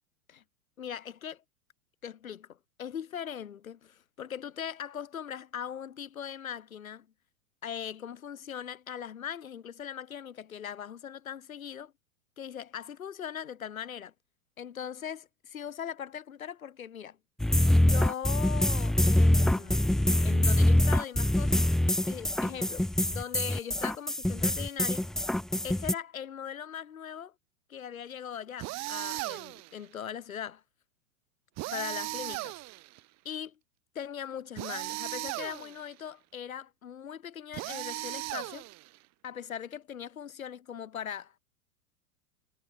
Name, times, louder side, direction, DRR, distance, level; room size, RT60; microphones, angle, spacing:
voice 1, 0.8-1.4 2.0-7.1 7.6-11.9 12.4-14.1 14.6-17.2 17.8-21.6 22.0-25.1 25.6-27.3 27.7-30.6 31.7-32.5 33.2-33.6 33.9-38.6 39.2-41.3, left 8 dB, 70° left, 3.2 m, -40 dB
sound 1, 17.4-25.9, left 1 dB, ahead, 0.5 m, -24 dB
sound 2, 28.6-29.7 31.6-33.0 34.6-35.9 37.5-39.0, right 21 dB, 40° right, 7.0 m, -37 dB
figure-of-eight pair, 100°, 43 cm